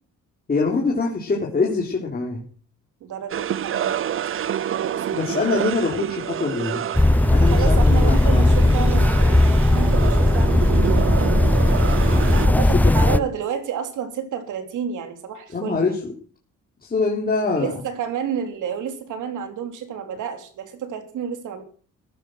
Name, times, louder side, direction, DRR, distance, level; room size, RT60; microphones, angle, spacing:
voice 1, 0.5-2.5 5.1-6.8 7.3-8.5 12.6-13.2 15.5-16.0 16.8-17.7, left 4 dB, 30° left, -1 dB, 3.8 m, -24 dB
voice 2, 3.0-4.0 4.7-5.1 7.3-9.4 9.7-11.1 12.3-16.0 17.5-21.6, right 7 dB, 80° right, 8 dB, 3.4 m, -30 dB
sound 1, 3.3-12.5, right 10 dB, 45° right, 0.7 m, -28 dB
sound 2, 6.9-13.2, left 1 dB, 5° left, 0.9 m, -17 dB
15.5 x 12.0 x 6.5 m, 0.43 s
cardioid pair, 90°, 30 cm